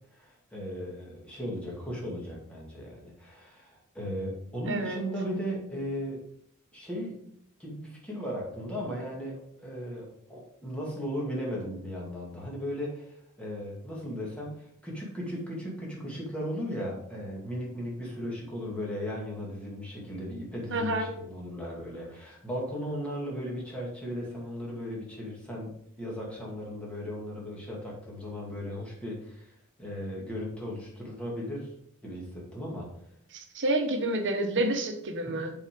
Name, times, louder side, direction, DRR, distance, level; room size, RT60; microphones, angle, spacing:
voice 1, 0.1-6.2 6.7-7.2 7.6-25.7 26.0-31.7 32.0-32.9 35.3-35.4, equal, 5° left, -4 dB, 2.3 m, -36 dB
voice 2, 4.7-5.0 20.7-21.1 33.3-35.5, right 1 dB, 55° right, 5 dB, 1.2 m, -29 dB
7.2 x 4.8 x 5.1 m, 0.72 s
head